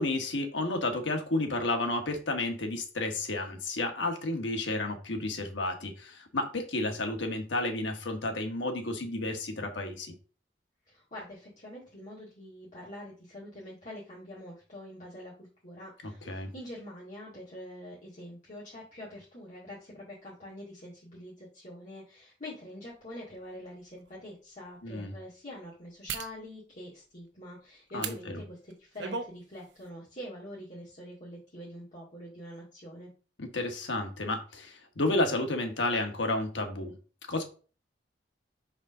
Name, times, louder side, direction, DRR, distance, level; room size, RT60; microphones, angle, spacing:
voice 1, 0.0-10.1 16.3-16.5 24.8-25.1 27.9-28.4 33.4-37.0 37.3-37.4, left 2 dB, 85° left, 4 dB, 1.3 m, -31 dB
voice 2, 10.9-33.1, left 1 dB, 45° left, -7 dB, 2.1 m, -45 dB
sound 1, 23.3-23.4 24.0-24.1 26.1-26.4 28.0-28.2 28.7-29.3 29.7-29.9, right 5 dB, 70° right, 0.8 m, -36 dB
5.1 x 3.7 x 5.4 m, 0.37 s
head